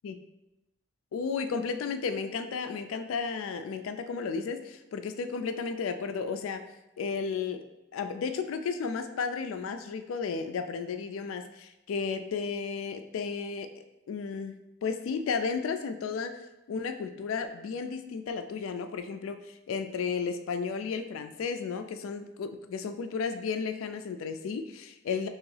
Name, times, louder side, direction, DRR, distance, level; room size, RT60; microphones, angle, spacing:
voice 1, 1.1-6.6 7.0-7.6 7.9-13.7 14.1-16.4 16.7-25.3, left 5 dB, 80° left, 8 dB, 0.3 m, -33 dB
3.5 x 3.0 x 3.2 m, 0.93 s
head